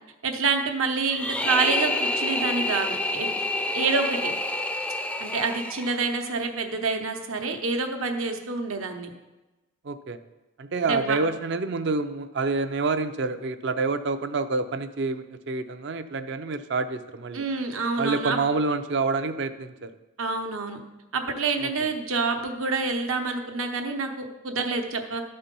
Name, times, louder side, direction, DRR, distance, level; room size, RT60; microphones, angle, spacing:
voice 1, 0.2-3.3 3.7-4.3 5.2-9.1 10.9-11.2 17.3-18.4 20.2-20.8 21.1-25.2, right 4 dB, 80° right, 4 dB, 1.0 m, -27 dB
sound 1, 1.1-6.2, left 1 dB, 5° left, 0.4 m, -28 dB
voice 2, 9.8-10.2 10.6-17.4 18.0-19.9 21.6-21.7, right 3 dB, 55° right, 9 dB, 0.5 m, -27 dB
12.0 x 4.3 x 5.3 m, 1.1 s
head